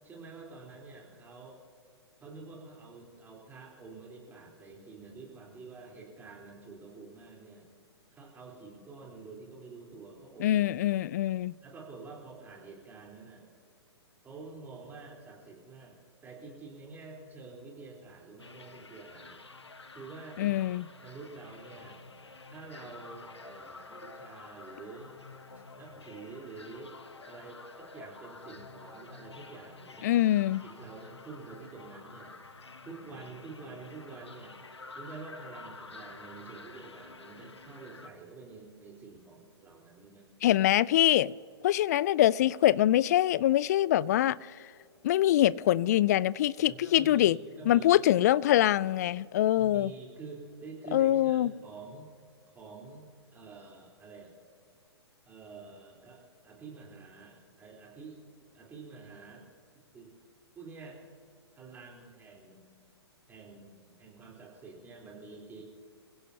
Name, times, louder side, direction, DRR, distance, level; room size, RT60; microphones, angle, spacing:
voice 1, 0.0-1.6 2.2-7.7 8.1-10.9 11.6-13.4 14.2-19.4 19.9-20.5 21.0-22.0 22.5-25.2 25.5-27.0 27.2-30.3 30.6-32.3 32.8-34.6 35.0-40.3 46.6-48.1 49.6-52.1 52.5-54.3 55.3-58.2 58.5-59.5 59.9-60.1 60.5-61.1 61.6-62.8 63.3-65.6, right 4 dB, 15° right, 3.8 m, -48 dB
voice 2, 10.4-11.5 20.4-20.8 30.0-30.6 40.4-41.3 41.6-44.6 45.0-47.4 47.7-49.9 50.9-51.5, left 13 dB, 40° left, 0.4 m, -24 dB
sound 1, 18.4-38.1, left 3 dB, 75° left, 1.3 m, -50 dB
27.0 x 16.5 x 2.9 m
figure-of-eight pair, 120°, 14 cm